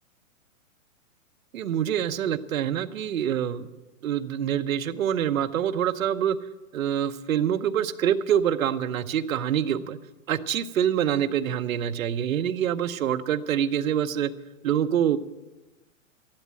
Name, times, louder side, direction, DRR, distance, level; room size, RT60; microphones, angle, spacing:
voice 1, 1.5-3.7 4.0-6.4 6.7-10.0 10.3-14.3 14.6-15.2, right 9 dB, 80° right, 10 dB, 0.9 m, -25 dB
12.0 x 12.0 x 7.5 m, 1.1 s
hypercardioid pair, 180°, 40 cm